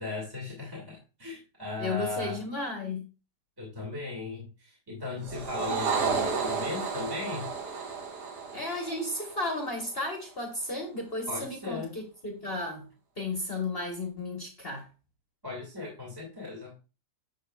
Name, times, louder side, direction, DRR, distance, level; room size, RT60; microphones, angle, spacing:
voice 1, 0.0-2.4 3.6-7.5 11.3-11.9 15.4-16.7, left 3 dB, 10° right, -3 dB, 2.1 m, -37 dB
voice 2, 1.8-3.0 8.5-12.9 13.2-14.9, left 2 dB, 35° left, 2 dB, 1.4 m, -34 dB
sound 1, 5.2-9.8, right 5 dB, 75° right, 1.8 m, -32 dB
10.0 x 6.1 x 2.3 m, 0.32 s
omnidirectional pair, 1.8 m